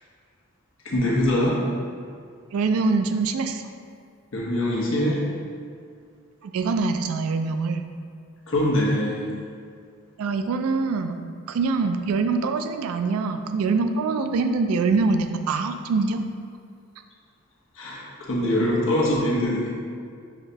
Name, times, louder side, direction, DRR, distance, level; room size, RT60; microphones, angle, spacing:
voice 1, 0.8-1.6 4.3-5.2 8.5-9.2 17.8-19.6, left 1 dB, 65° left, -5 dB, 1.0 m, -23 dB
voice 2, 2.5-3.6 6.4-7.8 10.2-16.2, right 4 dB, 80° right, 7 dB, 0.3 m, -24 dB
5.7 x 2.7 x 3.3 m, 2.2 s
head